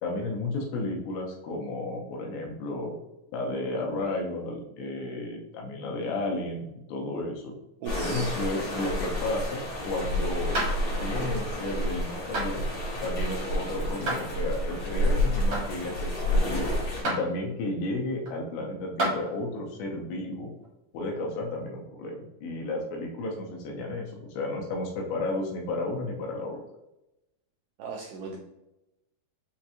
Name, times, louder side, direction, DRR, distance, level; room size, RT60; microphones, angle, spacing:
voice 1, 0.0-2.9 3.3-7.5 8.0-10.6 11.0-12.6 13.0-16.7 17.0-20.5 20.9-26.6, left 2 dB, 80° left, 0 dB, 2.8 m, -33 dB
sound 1, 7.8-17.0, left 1 dB, 60° left, 1.3 m, -29 dB
voice 2, 7.8-8.3 27.8-28.4, right 4 dB, 90° right, -2 dB, 2.3 m, -37 dB
sound 2, 10.5-10.8 12.3-12.5 14.1-14.2 15.5-15.7 17.0-17.2 18.3-18.4 19.0-19.2 20.6-20.7, right 1 dB, 70° right, 1.2 m, -28 dB
7.0 x 2.5 x 2.8 m, 0.90 s
omnidirectional pair, 5.1 m